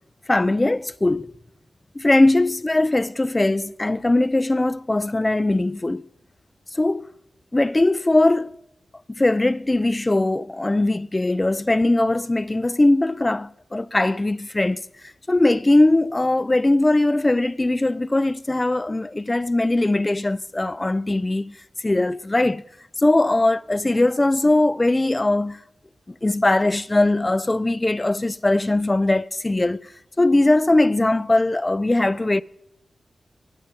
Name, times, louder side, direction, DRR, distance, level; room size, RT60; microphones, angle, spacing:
voice 1, 0.3-1.3 2.0-6.0 6.7-7.1 7.5-8.6 9.1-21.6 21.8-22.6 23.0-25.6 26.2-29.9 30.2-32.4, left 2 dB, 25° left, 0.4 m, -20 dB
16.0 x 8.8 x 5.5 m
supercardioid pair, 40°, 0 cm